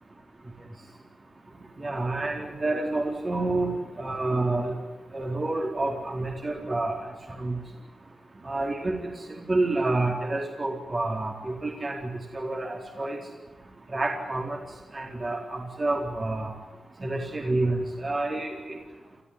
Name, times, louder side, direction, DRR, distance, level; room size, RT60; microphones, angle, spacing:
voice 1, 1.8-3.7 4.0-4.7 5.1-7.1 7.4-7.6 8.4-9.1 9.5-13.2 13.9-14.6 14.9-16.5 17.0-18.8, right 2 dB, 40° right, 1 dB, 4.1 m, -28 dB
28.5 x 14.5 x 9.9 m, 1.3 s
cardioid pair, 80°, 0 cm